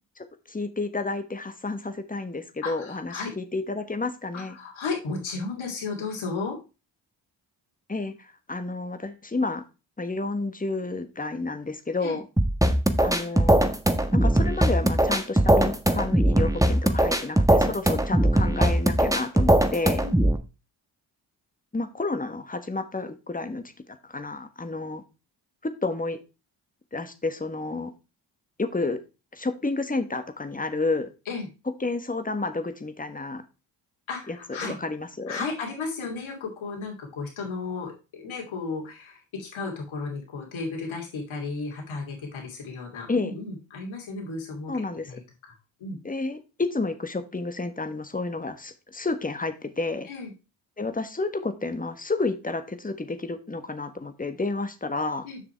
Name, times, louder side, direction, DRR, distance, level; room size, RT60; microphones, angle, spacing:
voice 1, 0.5-4.6 7.9-9.6 10.0-12.2 13.0-13.6 14.1-20.0 21.7-25.0 25.6-26.2 26.9-27.9 28.6-29.0 29.3-31.1 31.8-33.4 34.3-34.4 34.6-35.5 43.1-43.3 44.7-45.1 46.0-50.1 50.8-55.3, left 3 dB, 15° left, 9 dB, 1.5 m, -30 dB
voice 2, 2.6-3.3 4.3-6.6 12.0-12.2 20.0-20.3 31.3-31.5 34.1-34.8 35.3-44.7 45.1-45.5 45.8-46.0 50.0-50.3 55.2-55.4, left 4 dB, 75° left, 0 dB, 2.8 m, -34 dB
sound 1, 12.4-20.4, right 1 dB, 5° right, 1.5 m, -20 dB
7.3 x 6.0 x 4.5 m, 0.29 s
supercardioid pair, 45°, 47 cm